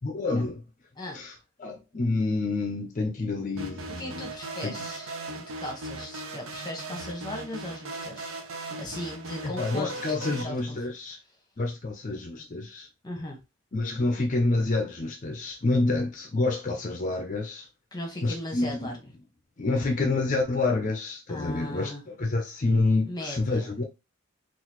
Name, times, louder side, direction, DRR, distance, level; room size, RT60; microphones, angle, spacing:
voice 1, 0.0-0.6 1.1-1.3 1.6-4.3 4.6-4.8 9.4-11.2 11.6-12.9 13.7-17.7 18.2-18.9 19.6-23.8, left 2 dB, 35° left, 0.5 m, -28 dB
sound 1, 3.6-10.4, right 2 dB, 75° right, 0.7 m, -38 dB
voice 2, 4.0-10.8 13.0-13.4 17.9-19.0 21.3-22.0 23.1-23.7, left 1 dB, 20° left, 1.0 m, -38 dB
3.8 x 2.5 x 3.0 m
head